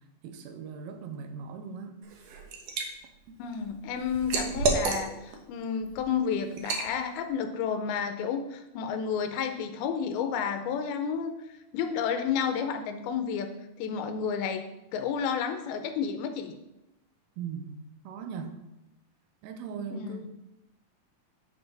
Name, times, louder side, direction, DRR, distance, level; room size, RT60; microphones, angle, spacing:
voice 1, 0.2-2.0 17.4-18.6 19.4-20.3, right 6 dB, 90° right, 6 dB, 2.7 m, -39 dB
Liquid, 2.0-2.9 3.3-5.4 5.8-6.0 6.6-6.9, right 3 dB, 70° right, 1.6 m, -30 dB
voice 2, 3.4-11.3 11.7-13.5 13.8-14.6 14.9-16.6 19.9-20.2, left 7 dB, 85° left, 7 dB, 2.7 m, -31 dB
10.5 x 5.5 x 4.0 m, 0.90 s
omnidirectional pair, 4.3 m